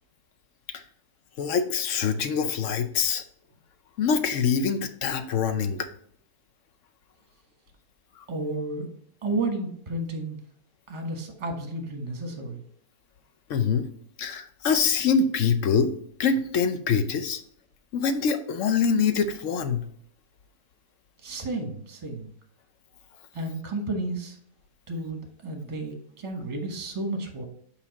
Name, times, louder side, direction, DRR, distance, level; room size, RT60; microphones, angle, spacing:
voice 1, 1.4-3.2 4.0-5.9 8.2-8.3 13.5-13.8 14.2-15.9 16.2-17.4 17.9-19.9, left 6 dB, 65° left, 9 dB, 0.9 m, -24 dB
voice 2, 8.3-8.9 9.2-10.4 10.9-12.6 21.2-22.3 23.3-24.4 24.9-27.5, right 2 dB, 20° right, 4 dB, 1.1 m, -32 dB
5.6 x 4.9 x 4.0 m, 0.68 s
omnidirectional pair, 1.7 m